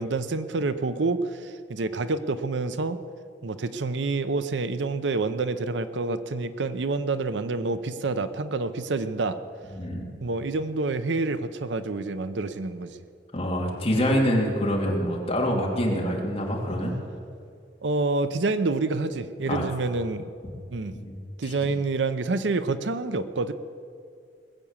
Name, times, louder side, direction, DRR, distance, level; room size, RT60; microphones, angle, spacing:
voice 1, 0.0-3.0 3.4-9.4 10.2-13.0 17.8-20.2 20.7-21.0 21.4-23.5, right 3 dB, 80° right, 12 dB, 0.7 m, -28 dB
voice 2, 9.7-10.1 13.3-16.9 19.5-19.6 20.9-21.5, equal, 30° left, -2 dB, 2.7 m, -26 dB
20.0 x 8.2 x 7.3 m, 2.3 s
head